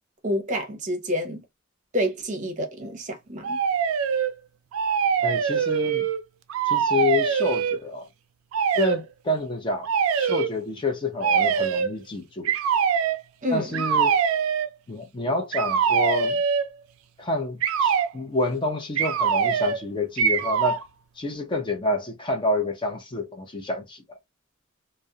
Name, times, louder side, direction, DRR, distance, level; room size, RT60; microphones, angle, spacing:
voice 1, 0.2-1.4 1.9-3.6 13.4-13.8, equal, 40° right, 0.7 m, -28 dB
sound 1, 3.4-4.3 4.7-6.2 6.5-7.8 8.5-9.0 9.8-10.5 11.2-11.9 12.5-13.2 13.7-14.7 15.5-16.7 17.6-18.1 19.0-19.8 20.2-20.8, right 7 dB, 90° right, 0.3 m, -23 dB
voice 2, 5.2-6.1 6.7-8.1 8.7-9.9 10.1-12.5 13.5-14.2 14.9-16.4 17.2-20.8 21.2-24.0, left 2 dB, 25° left, 0.5 m, -28 dB
2.3 x 2.0 x 2.7 m
head